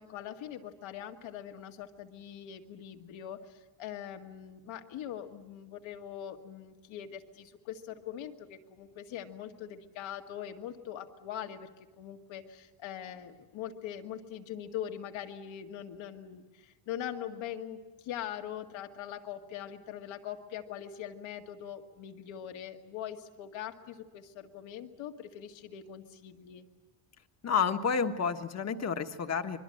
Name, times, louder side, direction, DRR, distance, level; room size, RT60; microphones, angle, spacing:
voice 1, 0.0-26.7, left 10 dB, 75° left, 4 dB, 2.2 m, -42 dB
voice 2, 27.4-29.6, left 6 dB, 35° left, 7 dB, 1.4 m, -30 dB
25.5 x 22.0 x 7.8 m, 1.2 s
cardioid pair, 135°, 47 cm